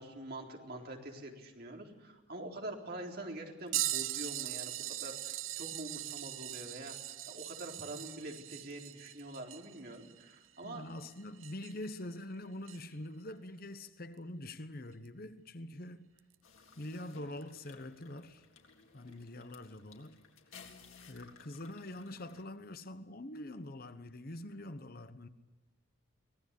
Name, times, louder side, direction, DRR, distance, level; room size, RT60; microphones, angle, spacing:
voice 1, 0.0-10.8, right 1 dB, 50° right, 4.0 m, -45 dB
sound 1, 3.7-11.9 12.7-12.8 15.0-15.1 16.2-16.3 17.4-17.5, right 15 dB, 80° right, 0.7 m, -40 dB
voice 2, 10.6-16.1 16.8-18.4 18.9-20.2 21.1-25.3, left 1 dB, 45° left, 1.0 m, -45 dB
sound 2, 16.4-22.4, left 5 dB, 90° left, 3.7 m, -58 dB
24.5 x 18.5 x 8.4 m
head